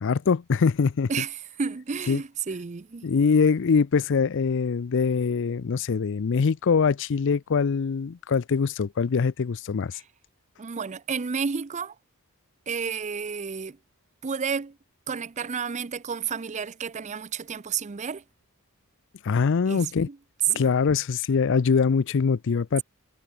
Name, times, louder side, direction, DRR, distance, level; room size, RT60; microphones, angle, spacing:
voice 1, 0.0-1.1 2.1-2.2 3.0-10.0 19.2-20.1 20.5-22.8, left 5 dB, 60° left, 0.5 m, -23 dB
voice 2, 1.1-3.1 9.9-10.0 10.6-11.9 12.7-13.8 14.2-14.8 15.1-18.2 19.7-20.2 20.5-20.7, right 6 dB, 30° right, 0.5 m, -31 dB
head